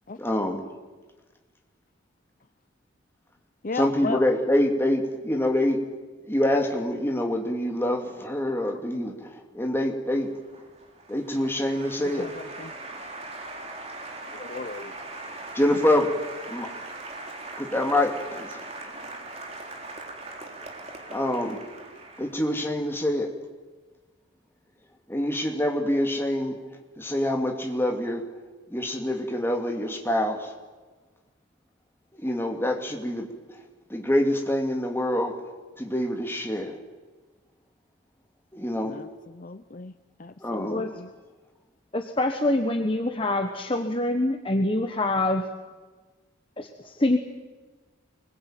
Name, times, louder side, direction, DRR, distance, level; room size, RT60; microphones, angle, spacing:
voice 1, 0.2-0.7 3.7-5.8 6.3-10.3 11.1-12.3 15.5-16.2 16.5-16.7 17.6-18.6 21.1-21.6 22.2-23.3 25.1-26.6 27.0-28.2 28.7-30.5 32.1-33.3 33.9-35.3 35.8-36.8 38.5-39.0 40.4-40.9, left 1 dB, 10° left, 3 dB, 2.8 m, -26 dB
voice 2, 3.6-4.2 8.5-8.7 12.2-12.7 14.2-14.9 38.8-39.9 40.2-41.1, left 4 dB, 45° left, 10 dB, 0.7 m, -36 dB
Applause, 10.2-22.7, right 2 dB, 35° right, 3.6 m, -40 dB
voice 3, 41.9-45.4 46.6-47.2, left 1 dB, 25° left, 5 dB, 1.3 m, -25 dB
25.5 x 21.0 x 9.1 m, 1.3 s
head